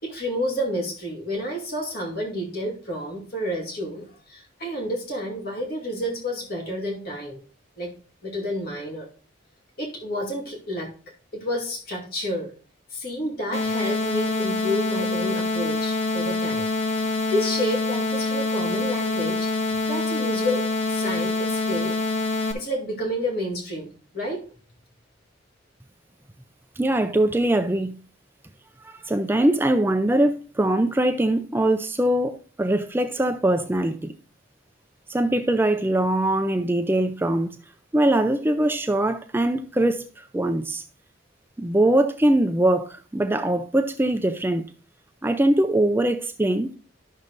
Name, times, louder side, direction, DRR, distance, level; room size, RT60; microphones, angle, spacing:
voice 1, 0.0-7.4 7.8-7.9 8.2-9.1 9.8-10.9 11.3-12.5 12.9-16.7 17.0-19.5 19.9-21.9 22.5-24.4, equal, 50° left, 2.4 m, -30 dB
sound 1, 13.5-22.5, left 3 dB, 90° left, 1.7 m, -25 dB
voice 2, 26.8-27.9 28.8-34.1 35.1-37.6 37.9-40.8 41.6-44.7 45.2-46.8, right 1 dB, 10° right, 0.4 m, -22 dB
12.0 x 6.4 x 2.6 m
head